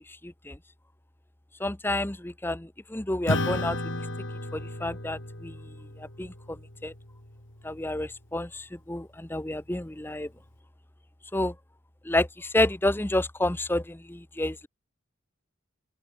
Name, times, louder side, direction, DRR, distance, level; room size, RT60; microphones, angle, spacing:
voice 1, 0.2-0.6 1.6-3.8 4.5-5.5 6.2-6.3 6.8-6.9 7.6-10.3 11.3-11.5 12.1-14.7, left 1 dB, 10° left, 0.7 m, -29 dB
Acoustic guitar / Strum, 3.3-8.1, left 1 dB, 65° left, 5.0 m, -34 dB
open air
head